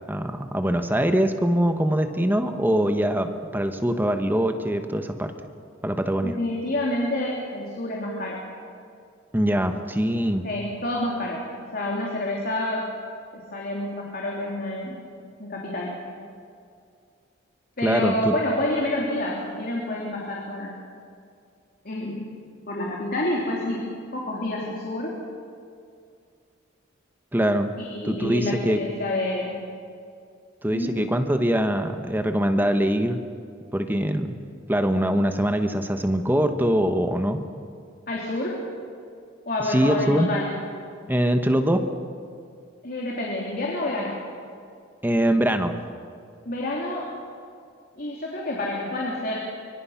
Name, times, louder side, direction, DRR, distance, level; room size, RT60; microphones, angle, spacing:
voice 1, 0.1-5.3 5.8-6.3 9.3-10.4 17.8-18.3 27.3-27.7 28.0-28.8 30.6-33.2 33.7-34.3 34.7-37.4 39.6-40.3 41.1-41.8 45.0-45.7, equal, 10° right, 7 dB, 1.1 m, -23 dB
voice 2, 6.2-8.4 10.4-11.4 11.7-12.9 13.3-15.0 15.4-15.9 17.8-20.7 21.8-22.3 22.7-25.1 27.8-29.6 30.7-30.9 38.1-38.6 39.5-40.5 42.8-44.2 46.4-47.1 48.0-49.4, left 1 dB, 50° left, -2 dB, 3.3 m, -28 dB
24.5 x 24.5 x 5.8 m, 2.3 s
head